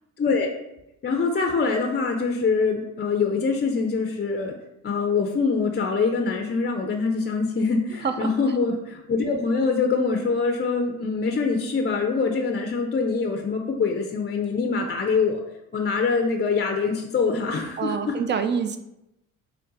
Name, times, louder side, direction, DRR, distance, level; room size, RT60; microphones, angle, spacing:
voice 1, 0.2-0.5 1.0-4.5 4.8-15.4 15.7-18.2, left 4 dB, 30° left, 3 dB, 0.5 m, -24 dB
voice 2, 17.8-18.8, right 6 dB, 30° right, 9 dB, 0.4 m, -26 dB
3.9 x 2.2 x 3.8 m, 0.86 s
supercardioid pair, 60°, 35 cm